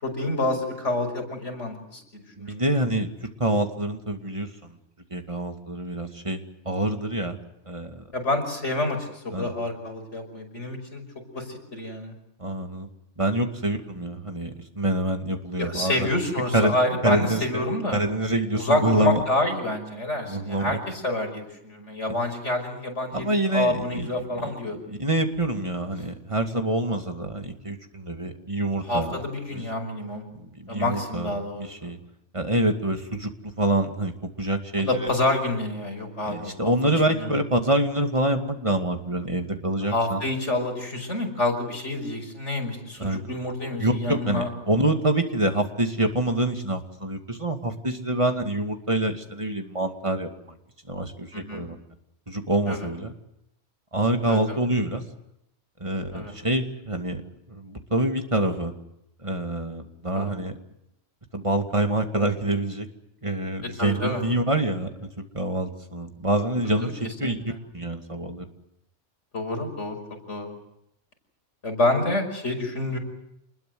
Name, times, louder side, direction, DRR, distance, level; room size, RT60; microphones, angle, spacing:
voice 1, 0.0-2.6 8.1-11.0 11.3-12.1 15.6-18.0 18.5-24.8 28.8-30.2 30.7-31.9 34.9-36.7 37.1-37.3 39.9-44.5 51.3-51.7 52.7-52.9 54.3-54.6 56.1-56.3 60.1-60.3 63.8-64.2 66.6-66.9 67.2-67.3 69.3-70.0 70.3-70.5 71.6-73.0, left 2 dB, 70° left, 4 dB, 6.0 m, -28 dB
voice 2, 2.4-4.7 5.1-6.4 6.7-7.4 7.7-8.0 9.3-9.5 12.4-12.9 13.2-16.1 16.5-16.8 17.0-17.6 17.9-19.2 20.3-20.8 23.1-24.1 24.3-24.5 24.9-29.1 29.5-29.6 30.3-31.3 31.6-32.0 32.3-34.1 34.4-35.1 36.2-40.2 43.0-43.3 43.8-50.6 50.9-51.8 52.3-53.1 53.9-55.0 55.8-57.2 57.5-58.7 59.2-60.5 61.3-62.9 63.2-67.4 67.7-68.5, right 1 dB, 25° right, 5 dB, 2.4 m, -26 dB
28.0 x 21.0 x 7.9 m, 0.79 s
omnidirectional pair, 1.2 m